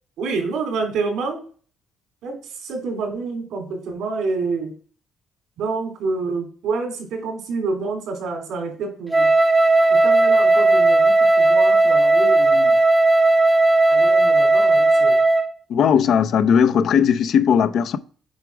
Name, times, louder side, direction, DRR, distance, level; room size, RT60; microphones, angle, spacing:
voice 1, 0.2-1.4 2.2-4.7 5.6-9.3 9.9-12.8 13.9-15.2, right 4 dB, 80° right, 3.3 m, -28 dB
Wind instrument woodwind instrument, 9.1-15.5, right 2 dB, 15° right, 0.8 m, -15 dB
voice 2, 15.7-18.0, left 7 dB, 60° left, 0.6 m, -17 dB
8.1 x 5.0 x 4.7 m
cardioid pair, 135°, 0 cm